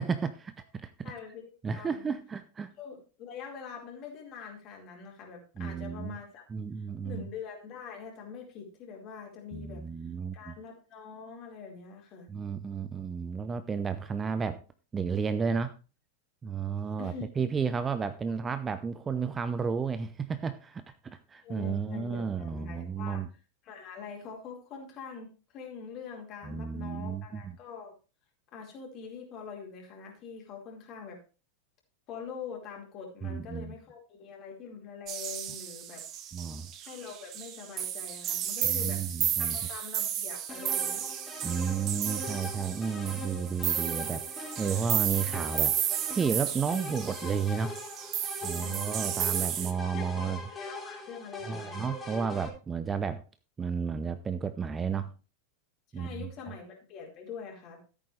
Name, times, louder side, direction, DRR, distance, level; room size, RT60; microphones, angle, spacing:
voice 1, 0.0-1.1 1.6-2.7 5.6-6.2 6.5-7.3 9.5-10.6 12.3-14.6 14.9-15.7 16.4-23.3 26.5-27.5 33.2-33.7 36.3-36.7 38.6-39.6 41.4-45.7 46.1-47.8 48.4-50.4 51.4-53.2 53.6-55.1 55.9-56.3, right 6 dB, 20° right, 12 dB, 0.7 m, -32 dB
voice 2, 1.0-2.1 2.8-6.5 6.8-9.8 10.3-12.3 17.0-17.3 21.4-23.3 23.6-27.9 28.5-31.2 32.1-36.1 36.8-41.1 48.5-49.1 49.6-51.8 55.9-57.8, left 6 dB, 35° left, 1 dB, 4.5 m, -44 dB
sound 1, 35.1-49.7, right 10 dB, 35° right, 1.3 m, -33 dB
sound 2, 40.5-52.5, left 3 dB, 15° left, 3.7 m, -42 dB
14.5 x 8.6 x 3.3 m, 0.33 s
figure-of-eight pair, 90°, 0 cm